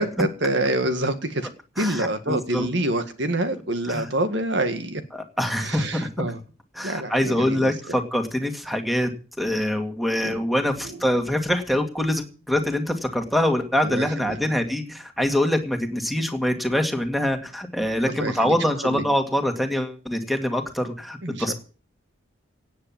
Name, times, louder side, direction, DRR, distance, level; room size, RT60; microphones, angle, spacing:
voice 1, 0.0-1.5 1.8-5.0 5.6-6.4 6.8-7.7 10.2-10.3 10.8-11.0 13.8-14.4 18.1-18.5 18.8-19.0 21.2-21.5, right 1 dB, 65° right, 9 dB, 1.9 m, -26 dB
voice 2, 1.8-2.7 3.9-4.1 5.1-6.1 6.7-9.1 9.4-21.5, left 1 dB, ahead, 5 dB, 2.1 m, -24 dB
18.0 x 7.9 x 7.3 m, 0.38 s
head